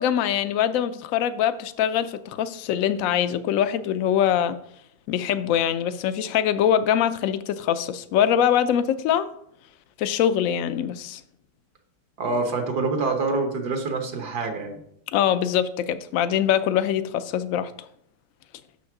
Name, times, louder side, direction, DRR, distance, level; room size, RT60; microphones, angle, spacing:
voice 1, 0.0-4.6 5.1-9.3 10.0-11.2 15.1-17.7, left 9 dB, 65° left, 12 dB, 0.9 m, -23 dB
voice 2, 12.2-14.8, right 3 dB, 70° right, 5 dB, 1.7 m, -26 dB
6.6 x 6.2 x 5.9 m, 0.72 s
omnidirectional pair, 1.8 m